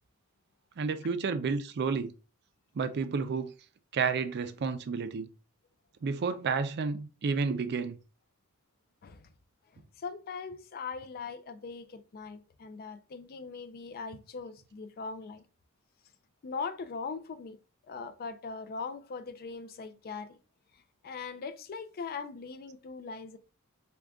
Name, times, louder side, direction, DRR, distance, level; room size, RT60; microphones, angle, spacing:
voice 1, 0.8-2.1 2.8-3.5 3.9-5.3 6.0-8.0, right 5 dB, 50° right, 0.4 m, -31 dB
voice 2, 9.0-9.3 9.7-15.4 16.4-17.6 17.8-20.4 21.0-23.4, left 5 dB, 45° left, 0.4 m, -40 dB
3.7 x 2.3 x 3.4 m
head